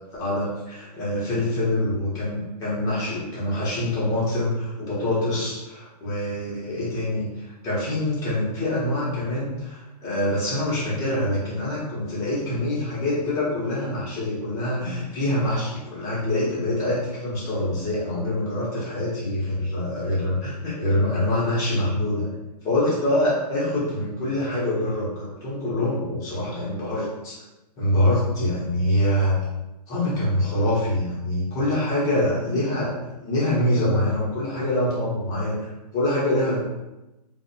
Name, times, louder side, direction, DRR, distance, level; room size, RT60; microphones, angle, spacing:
voice 1, 0.0-22.3 22.6-27.3 27.8-29.4 29.9-36.6, left 1 dB, 15° left, -8 dB, 0.8 m, -25 dB
2.6 x 2.1 x 2.6 m, 1.0 s
hypercardioid pair, 160°, 21 cm